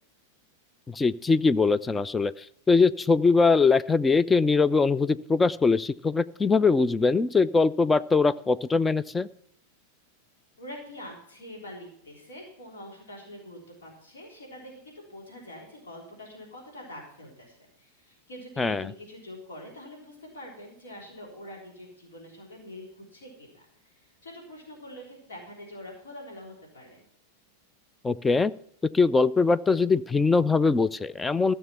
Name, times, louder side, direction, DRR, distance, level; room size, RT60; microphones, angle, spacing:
voice 1, 0.9-2.3 2.7-9.3 18.6-18.9 28.0-28.5 28.9-31.5, left 4 dB, 10° left, 15 dB, 0.4 m, -22 dB
voice 2, 10.6-27.0, left 1 dB, 65° left, -1 dB, 3.5 m, -45 dB
14.0 x 6.6 x 5.7 m, 0.69 s
figure-of-eight pair, 90°, 0 cm